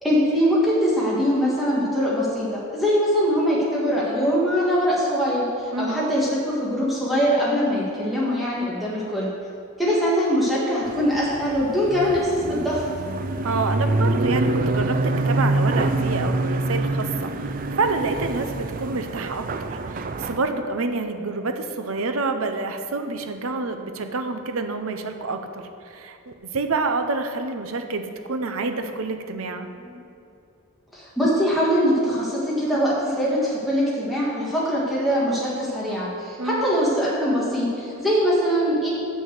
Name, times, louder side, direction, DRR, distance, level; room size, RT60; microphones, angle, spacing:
voice 1, 0.0-9.3 9.8-12.8 29.8-29.9 30.9-38.9, equal, ahead, -7 dB, 1.7 m, -22 dB
voice 2, 5.7-6.1 13.4-29.7 36.4-36.7, right 3 dB, 70° right, 7 dB, 0.8 m, -28 dB
sound 1, 10.9-20.4, right 2 dB, 40° right, 0.4 m, -25 dB
7.2 x 6.4 x 7.9 m, 2.6 s
head